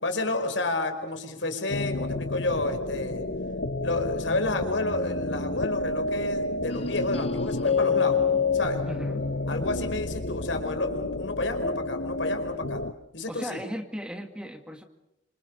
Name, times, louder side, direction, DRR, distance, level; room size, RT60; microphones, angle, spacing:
voice 1, 0.0-3.2 3.8-8.2 8.5-8.8 9.5-12.8 13.1-13.6, left 2 dB, 85° left, 6 dB, 5.0 m, -30 dB
sound 1, 1.7-12.9, left 3 dB, 65° left, 1.1 m, -29 dB
sound 2, 6.7-12.5, left 1 dB, 35° left, 1.1 m, -43 dB
voice 2, 8.8-9.3 13.3-14.8, equal, 5° right, 6 dB, 2.1 m, -37 dB
29.5 x 26.5 x 6.8 m, 0.84 s
head